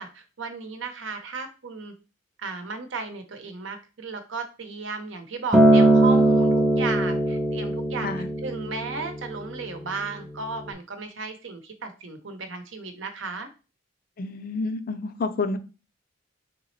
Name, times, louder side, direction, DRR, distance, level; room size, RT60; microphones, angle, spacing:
voice 1, 0.0-1.9 2.4-8.1 8.4-13.5, right 4 dB, 80° right, 0.8 m, -35 dB
Acoustic guitar, 5.5-9.8 10.7-10.8, right 2 dB, ahead, 0.6 m, -20 dB
voice 2, 14.2-15.6, left 3 dB, 50° left, 0.4 m, -29 dB
3.9 x 3.6 x 3.1 m
head